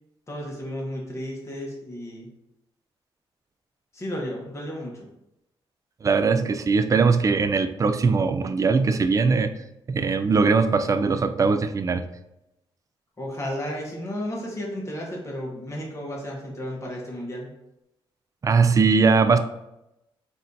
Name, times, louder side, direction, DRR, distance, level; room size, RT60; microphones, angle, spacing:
voice 1, 0.3-2.3 3.9-5.1 13.2-17.5, equal, 30° left, -2 dB, 1.3 m, -33 dB
voice 2, 6.0-9.5 9.9-12.0 18.4-19.4, right 4 dB, 35° right, 10 dB, 0.4 m, -20 dB
4.1 x 2.7 x 3.9 m, 0.89 s
cardioid pair, 90°, 10 cm